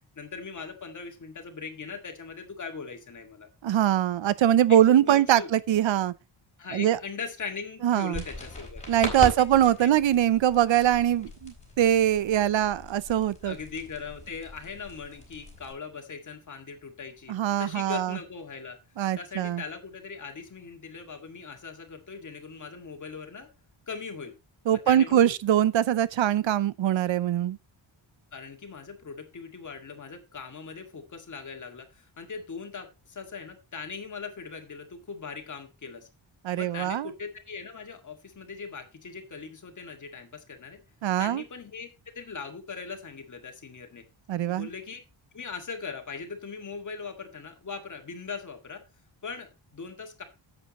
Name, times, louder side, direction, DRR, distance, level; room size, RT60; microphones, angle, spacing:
voice 1, 0.2-3.5 4.7-5.5 6.6-8.8 9.2-10.0 13.4-18.8 19.1-23.5 23.9-24.4 24.7-25.2 28.3-36.1 36.5-40.8 41.2-41.9 42.1-44.0 44.5-45.0 45.3-48.8 49.2-50.2, left 5 dB, 40° left, 2.0 m, -40 dB
voice 2, 3.6-6.1 6.7-7.0 7.8-8.2 8.9-13.5 17.3-18.2 19.0-19.6 24.7-27.6 36.4-37.1 41.0-41.4 44.3-44.7, right 11 dB, 70° right, 0.7 m, -23 dB
sound 1, 8.1-15.7, left 2 dB, 15° left, 4.0 m, -40 dB
11.0 x 8.1 x 3.0 m
wide cardioid pair, 175°, 48 cm